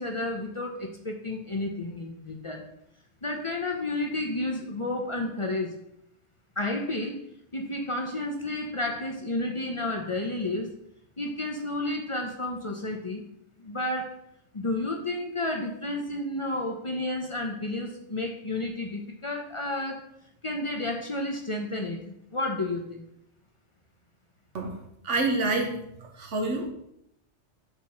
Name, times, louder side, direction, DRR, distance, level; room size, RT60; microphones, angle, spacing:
voice 1, 0.0-2.7 3.2-5.7 6.6-7.2 7.5-10.7 11.2-13.2 13.6-14.2 14.5-20.1 20.4-23.0, left 2 dB, 30° left, 2 dB, 0.7 m, -31 dB
voice 2, 25.0-25.8 26.2-26.7, right 3 dB, 90° right, 3 dB, 1.5 m, -27 dB
6.5 x 4.1 x 6.2 m, 0.77 s
omnidirectional pair, 1.2 m